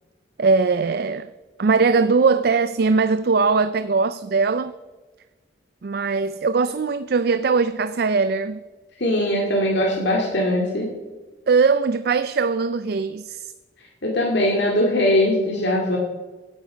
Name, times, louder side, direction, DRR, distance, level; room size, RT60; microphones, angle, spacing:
voice 1, 0.4-1.3 1.6-4.7 5.8-8.6 11.5-13.5, right 4 dB, 55° right, 0.4 m, -20 dB
voice 2, 9.0-10.9 14.0-16.0, left 1 dB, 70° left, 2.3 m, -21 dB
17.0 x 9.6 x 5.0 m
head